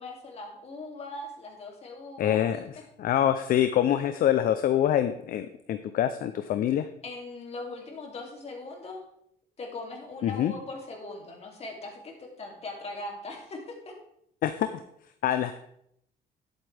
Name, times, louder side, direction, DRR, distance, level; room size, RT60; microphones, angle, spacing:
voice 1, 0.0-2.6 7.0-9.0 9.6-13.9, left 2 dB, 35° left, 0 dB, 2.8 m, -40 dB
voice 2, 2.2-2.6 3.0-6.9 10.2-10.5 14.4-14.7 15.2-15.6, left 11 dB, 55° left, 10 dB, 0.6 m, -25 dB
11.0 x 8.1 x 3.4 m, 0.73 s
cardioid pair, 110°, 17 cm